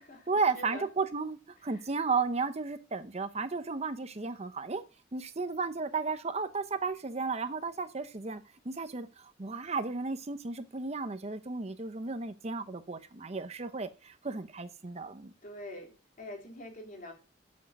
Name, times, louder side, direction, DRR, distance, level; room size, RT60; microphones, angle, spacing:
voice 1, 0.3-4.8 5.1-15.3, right 4 dB, 35° right, 10 dB, 0.8 m, -34 dB
voice 2, 15.4-17.1, left 1 dB, 45° left, 1 dB, 3.9 m, -45 dB
8.9 x 7.4 x 8.8 m, 0.35 s
head